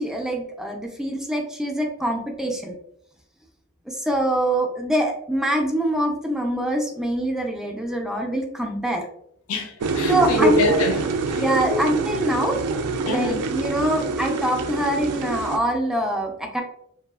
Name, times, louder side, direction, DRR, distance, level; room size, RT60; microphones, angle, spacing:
voice 1, 0.0-2.7 3.9-9.0 10.1-10.8 11.4-12.6 13.0-16.6, right 1 dB, ahead, 0.3 m, -24 dB
voice 2, 9.5-11.4 11.7-11.8 13.1-13.4, left 2 dB, 65° left, 0.4 m, -24 dB
sound 1, 9.8-15.6, right 4 dB, 90° right, 0.4 m, -26 dB
2.7 x 2.3 x 2.3 m
head